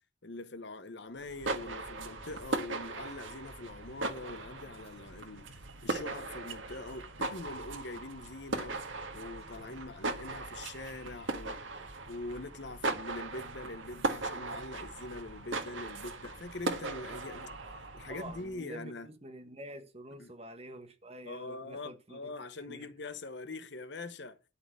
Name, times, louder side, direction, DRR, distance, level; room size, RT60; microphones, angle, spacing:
voice 1, 0.2-8.8 9.1-11.6 12.1-17.5 17.9-19.1 20.2-20.3 21.2-24.4, left 2 dB, 60° left, 0.9 m, -43 dB
sound 1, 1.2-18.5, right 3 dB, 80° right, 1.6 m, -39 dB
voice 2, 18.1-22.3 22.7-22.9, right 1 dB, 30° right, 1.4 m, -47 dB
12.5 x 4.2 x 8.2 m
head